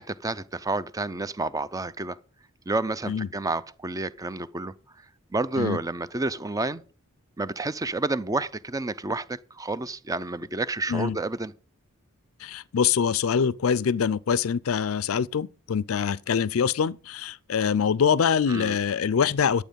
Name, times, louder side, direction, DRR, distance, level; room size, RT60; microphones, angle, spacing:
voice 1, 0.0-2.2 2.7-4.7 5.3-6.8 7.4-11.5 18.5-18.8, right 2 dB, 15° right, 0.5 m, -30 dB
voice 2, 12.4-19.7, left 7 dB, 70° left, 0.4 m, -24 dB
11.5 x 8.2 x 5.2 m
head